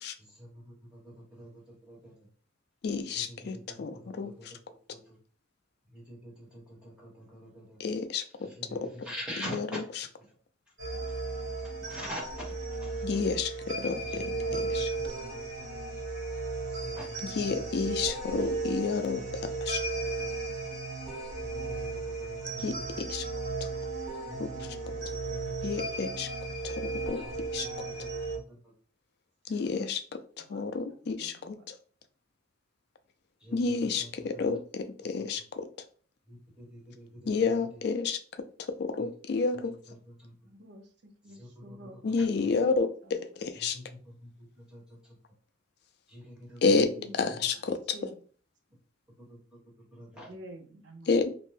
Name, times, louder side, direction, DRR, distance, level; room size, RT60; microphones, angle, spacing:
voice 1, 0.2-2.3 3.1-4.5 4.9-5.2 5.9-7.8 8.3-9.8 11.9-13.0 14.0-15.3 15.7-15.8 16.6-19.6 20.0-20.3 21.4-23.2 24.3-26.0 27.1-27.3 27.6-28.7 33.4-34.6 35.1-35.3 36.3-37.8 39.0-39.1 39.7-40.5 41.2-42.5 43.6-45.2 46.1-46.9 47.2-47.4 49.2-50.3, equal, 5° right, -5 dB, 1.0 m, -47 dB
voice 2, 2.8-4.5 7.8-8.9 9.5-9.7 13.0-14.9 17.4-19.8 22.6-23.3 24.4-24.5 25.6-26.3 26.6-27.2 27.5-27.7 29.5-30.0 30.4-31.8 33.5-35.7 37.3-38.2 38.7-39.8 42.0-43.8 46.6-48.0 51.1-51.3, left 4 dB, 55° left, 9 dB, 0.3 m, -30 dB
sound 1, 10.8-28.4, right 3 dB, 90° right, 1.0 m, -35 dB
voice 3, 29.6-30.0 30.5-30.6 31.0-31.7 40.4-42.8 43.0-43.5 47.0-47.3 47.9-48.2 50.3-51.1, equal, 60° right, 3 dB, 0.6 m, -50 dB
2.5 x 2.1 x 3.2 m, 0.42 s
head